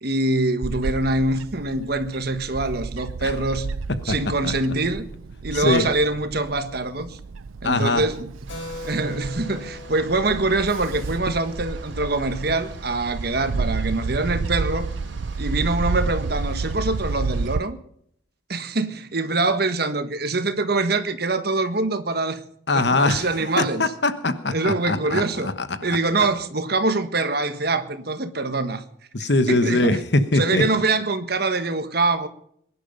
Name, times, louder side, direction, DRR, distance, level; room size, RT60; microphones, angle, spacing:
voice 1, 0.0-3.7 4.0-5.0 5.4-7.2 7.6-8.3 8.8-14.9 15.4-17.8 18.5-22.4 22.7-23.9 24.5-25.5 25.8-28.8 29.5-30.0 30.3-32.3, right 2 dB, 50° right, 1.5 m, -24 dB
Bird / Wind, 0.6-17.6, right 4 dB, 85° right, 0.5 m, -31 dB
voice 2, 5.5-5.9 7.6-8.0 22.7-23.3 23.6-25.7 26.2-26.3 29.1-30.6, left 2 dB, 55° left, 1.1 m, -22 dB
sound 1, 8.4-17.5, right 1 dB, 65° right, 3.2 m, -41 dB
Keyboard (musical), 8.5-12.6, left 2 dB, 75° left, 4.6 m, -41 dB
22.0 x 11.0 x 5.3 m
head